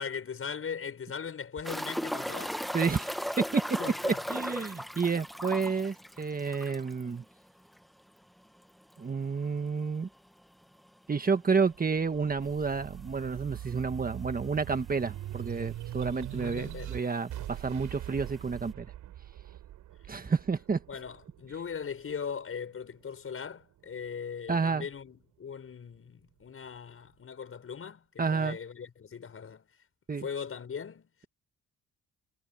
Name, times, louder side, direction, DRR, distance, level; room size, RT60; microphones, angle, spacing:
voice 1, 0.0-2.6 3.8-4.4 16.3-17.0 20.9-29.7 30.2-31.1, left 6 dB, 45° left, 6.3 m, -39 dB
sound 1, 1.6-7.0 7.3-7.4 7.8-7.9 10.6-10.7 12.4-12.5 13.3-13.4 13.6-13.7 14.6-14.7 14.9-15.5 16.5-16.6, equal, ahead, 1.4 m, -36 dB
voice 2, 2.7-3.6 4.3-7.2 9.0-10.1 11.1-18.9 20.1-20.8 24.5-24.8 28.2-28.6 30.1-30.2, right 5 dB, 30° right, 1.6 m, -30 dB
sound 2, 11.7-22.5 23.0-24.2, right 13 dB, 80° right, 7.3 m, -42 dB
cardioid pair, 90°, 30 cm